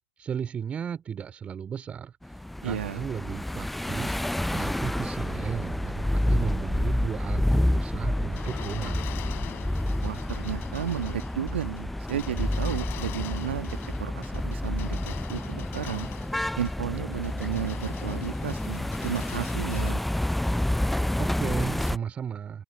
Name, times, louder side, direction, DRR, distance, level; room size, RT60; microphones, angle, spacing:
voice 1, 0.2-4.2 4.5-9.2 21.2-22.6, right 8 dB, 20° right, 3.6 m, -35 dB
sound 1, 2.2-22.0, left 1 dB, ahead, 0.3 m, -29 dB
voice 2, 2.6-3.0 10.0-16.1 16.6-20.0, right 10 dB, 65° right, 1.7 m, -33 dB
sound 2, 8.1-19.9, left 16 dB, 35° left, 4.4 m, -43 dB
open air
hypercardioid pair, 110°, 7 cm